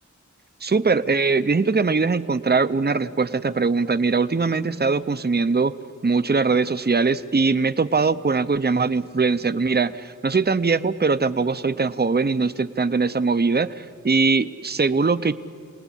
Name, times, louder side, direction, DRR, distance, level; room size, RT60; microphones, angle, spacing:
voice 1, 0.6-5.7 6.0-15.3, right 4 dB, 35° right, 11 dB, 0.7 m, -21 dB
27.5 x 19.0 x 10.0 m, 2.3 s
wide cardioid pair, 45°, 30 cm